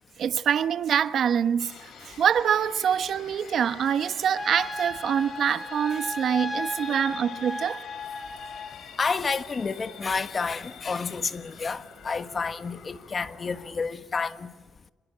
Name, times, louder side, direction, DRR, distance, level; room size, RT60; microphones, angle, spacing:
voice 1, 0.2-1.7 2.0-7.8, right 8 dB, 60° right, 1.1 m, -25 dB
sound 1, 1.6-13.7, left 7 dB, 70° left, 4.2 m, -47 dB
Trumpet, 4.3-8.7, left 2 dB, 15° left, 4.4 m, -35 dB
voice 2, 9.0-14.5, left 5 dB, 35° left, 1.4 m, -30 dB
27.5 x 22.0 x 8.6 m
cardioid pair, 90°, 0 cm